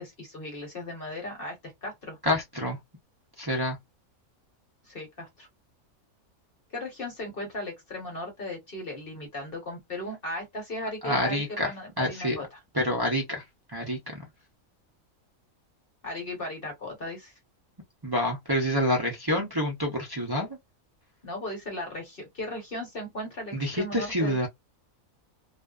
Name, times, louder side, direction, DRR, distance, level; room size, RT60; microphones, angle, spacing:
voice 1, 0.0-2.2 4.8-5.5 6.7-12.6 16.0-17.3 21.2-24.5, left 1 dB, 45° left, 1.1 m, -37 dB
voice 2, 2.2-2.8 3.4-3.8 11.0-11.7 12.0-12.4 12.7-13.4 13.7-14.2 18.0-20.5 23.5-24.5, equal, 35° right, 0.3 m, -27 dB
2.5 x 2.3 x 2.3 m
omnidirectional pair, 1.4 m